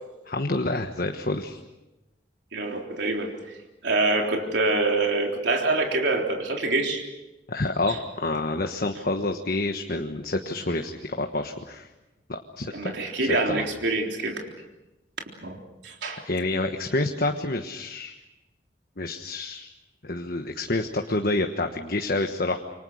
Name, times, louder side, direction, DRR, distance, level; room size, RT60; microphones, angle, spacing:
voice 1, 0.3-1.6 7.5-11.9 12.3-12.9 13.2-13.6 16.2-18.1 19.0-19.7 20.0-22.6, left 2 dB, 50° left, 4 dB, 1.3 m, -28 dB
voice 2, 2.5-3.6 3.8-7.0 7.9-8.0 12.7-14.4 15.4-16.2, right 2 dB, 70° right, 1 dB, 3.7 m, -26 dB
27.5 x 25.0 x 6.5 m, 1.0 s
head